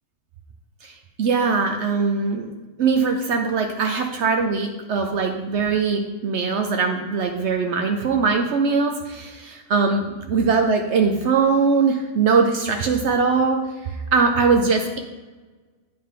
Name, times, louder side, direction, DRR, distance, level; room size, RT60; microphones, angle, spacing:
voice 1, 1.2-2.5 2.8-13.6 14.1-15.0, right 5 dB, 65° right, 3 dB, 0.9 m, -21 dB
8.7 x 5.2 x 3.7 m, 1.2 s
omnidirectional pair, 1.3 m